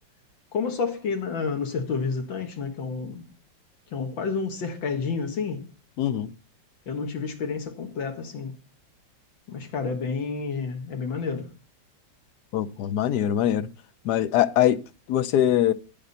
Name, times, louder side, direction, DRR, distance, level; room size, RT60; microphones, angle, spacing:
voice 1, 0.5-3.3 3.9-5.7 6.9-8.5 9.5-11.5, left 5 dB, 85° left, 2.5 m, -30 dB
voice 2, 6.0-6.3 12.5-13.7 14.0-14.8 15.1-15.7, left 11 dB, 70° left, 1.2 m, -22 dB
10.0 x 9.8 x 4.2 m
omnidirectional pair, 2.1 m